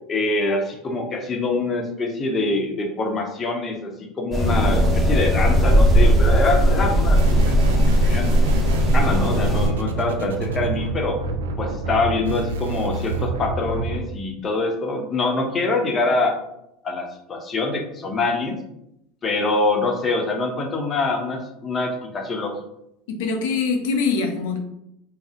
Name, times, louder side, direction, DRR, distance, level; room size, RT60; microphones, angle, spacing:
voice 1, 0.1-7.6 8.0-8.4 8.9-11.2 11.6-16.4 16.8-18.6 19.2-22.6, left 3 dB, 30° left, 3 dB, 0.6 m, -24 dB
sound 1, 4.3-9.7, equal, 25° right, 0.7 m, -17 dB
sound 2, 7.1-14.0, right 3 dB, 85° right, 0.3 m, -27 dB
voice 2, 23.1-24.6, left 4 dB, 75° left, 3 dB, 0.5 m, -23 dB
2.5 x 2.0 x 3.6 m, 0.81 s
hypercardioid pair, 85°, 0 cm